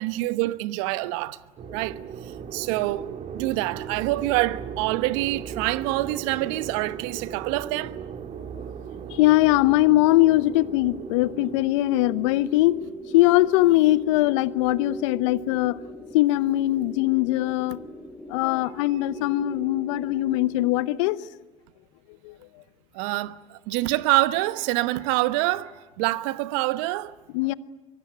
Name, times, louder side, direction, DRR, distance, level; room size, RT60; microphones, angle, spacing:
voice 1, 0.0-1.4 1.7-2.0 2.5-3.1 3.3-8.0 22.9-27.1, right 18 dB, 70° right, 1.0 m, -26 dB
sound 1, 1.6-11.6, right 7 dB, 45° right, 2.0 m, -37 dB
voice 2, 9.1-12.8 13.1-15.8 16.1-17.8 18.3-21.2 22.2-22.3 27.3-27.5, left 17 dB, 70° left, 0.9 m, -21 dB
sound 2, 10.2-20.7, equal, 5° right, 5.9 m, -40 dB
24.0 x 23.0 x 9.9 m
hypercardioid pair, 70°, 16 cm